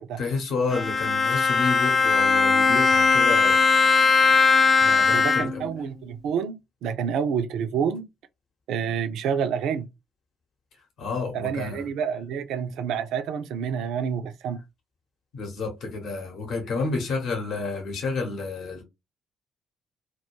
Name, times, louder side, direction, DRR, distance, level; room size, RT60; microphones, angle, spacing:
voice 1, 0.2-3.6 4.8-5.7 11.0-11.9 15.3-18.8, left 4 dB, 55° left, 0.8 m, -30 dB
Bowed string instrument, 0.7-5.8, left 4 dB, 40° left, 0.3 m, -19 dB
voice 2, 5.1-8.1 8.7-9.9 11.3-14.6, right 7 dB, 65° right, 0.3 m, -28 dB
2.3 x 2.2 x 2.9 m
figure-of-eight pair, 45°, 0 cm